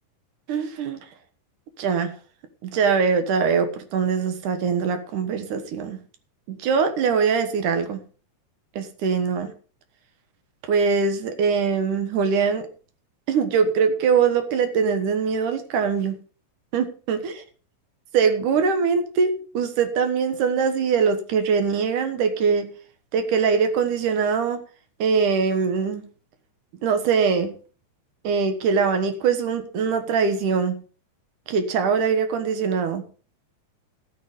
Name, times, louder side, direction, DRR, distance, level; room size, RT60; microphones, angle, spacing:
voice 1, 0.5-1.1 1.8-2.1 2.6-6.0 6.5-8.0 8.8-9.5 10.7-12.7 13.3-16.2 16.7-17.4 18.1-22.7 23.1-24.6 25.0-26.1 26.8-27.5 28.2-30.8 31.5-33.0, right 5 dB, 75° right, 8 dB, 2.8 m, -22 dB
13.5 x 8.5 x 5.1 m, 0.39 s
omnidirectional pair, 3.6 m